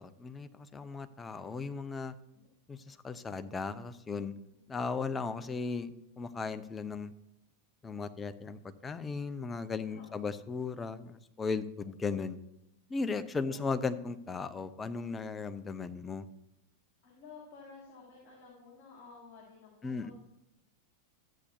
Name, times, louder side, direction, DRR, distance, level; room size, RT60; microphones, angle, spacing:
voice 1, 0.0-2.1 2.7-4.3 4.7-5.9 6.2-7.1 7.8-12.4 12.9-16.2 19.8-20.1, left 4 dB, 15° left, 11 dB, 0.5 m, -36 dB
voice 2, 9.8-10.3 13.4-14.0 17.0-20.1, left 4 dB, 40° left, -5 dB, 2.8 m, -53 dB
13.5 x 8.2 x 2.7 m, 0.85 s
figure-of-eight pair, 90°, 0 cm